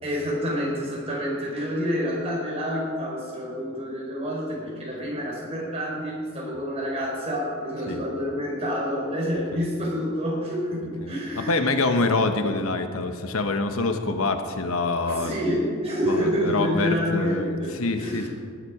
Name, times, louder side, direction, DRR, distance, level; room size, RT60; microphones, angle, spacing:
voice 1, 0.0-12.0 15.1-18.3, equal, 25° right, -3 dB, 4.2 m, -28 dB
voice 2, 11.0-15.4 16.1-18.3, left 3 dB, 70° left, 7 dB, 1.0 m, -26 dB
19.0 x 10.0 x 4.8 m, 2.2 s
head